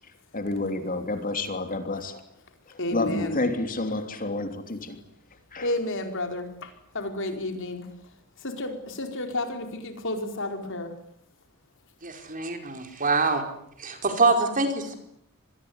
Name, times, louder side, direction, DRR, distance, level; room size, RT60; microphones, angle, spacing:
voice 1, 0.3-2.2 2.7-5.0 5.5-5.7, left 2 dB, 40° left, 8 dB, 3.3 m, -29 dB
voice 2, 2.8-3.4 5.6-7.9 8.4-10.9, left 2 dB, 60° left, 6 dB, 4.7 m, -31 dB
voice 3, 12.0-13.4 13.8-15.0, right 3 dB, 40° right, 6 dB, 4.9 m, -24 dB
26.5 x 21.0 x 9.6 m, 0.73 s
head